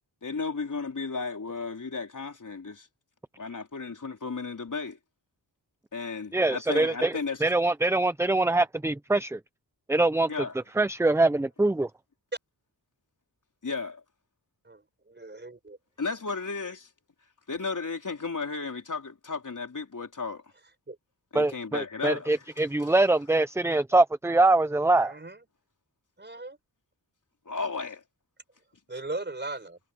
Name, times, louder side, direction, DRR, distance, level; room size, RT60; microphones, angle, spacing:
voice 1, 0.2-2.9 3.4-5.0 5.9-7.4 10.3-10.5 13.6-14.0 16.0-16.9 17.5-20.4 21.3-22.3 22.8-23.0 27.5-28.0, left 4 dB, 50° left, 4.0 m, -34 dB
voice 2, 6.3-7.1 7.4-9.4 9.9-10.3 10.8-11.9 21.3-25.1, right 2 dB, 5° right, 0.4 m, -23 dB
voice 3, 14.6-15.8 20.9-21.0 25.0-25.4 26.2-26.6 28.9-29.8, right 2 dB, 30° right, 4.8 m, -38 dB
wide cardioid pair, 105°, 38 cm